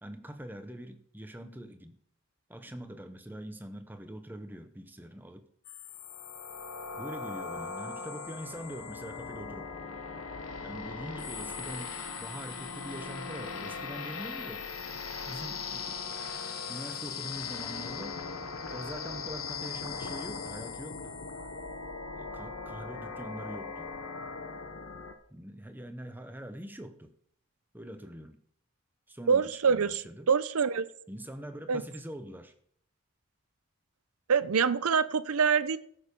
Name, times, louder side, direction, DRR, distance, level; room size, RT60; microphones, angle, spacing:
voice 1, 0.0-2.0 2.5-5.5 7.0-9.7 10.6-14.7 15.3-16.1 16.7-18.2 18.7-21.2 22.2-23.9 25.3-27.1 27.7-28.4 29.1-30.3 31.1-32.5, equal, 10° right, 0.8 m, -43 dB
sound 1, 5.6-25.1, left 5 dB, 80° left, 1.1 m, -39 dB
voice 2, 29.3-30.9 31.7-31.8 34.3-35.8, right 6 dB, 85° right, 0.6 m, -25 dB
14.5 x 6.6 x 5.2 m
head